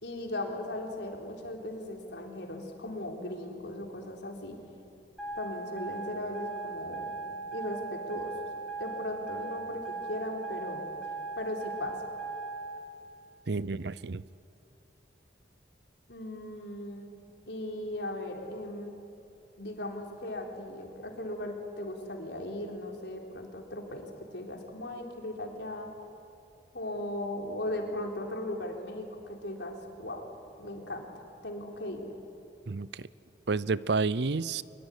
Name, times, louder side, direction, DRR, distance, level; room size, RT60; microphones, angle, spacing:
voice 1, 0.0-4.6 5.4-7.1 7.5-8.3 8.8-10.8 11.4-12.1 16.1-17.1 17.5-18.9 19.6-25.9 26.7-30.3 30.6-32.1, left 1 dB, 75° left, 2 dB, 3.9 m, -38 dB
sound 1, 5.2-12.8, right 3 dB, ahead, 5.5 m, -38 dB
voice 2, 13.5-14.2 32.7-33.1 33.5-34.6, right 4 dB, 70° right, 19 dB, 0.6 m, -30 dB
23.5 x 23.0 x 10.0 m, 2.7 s
head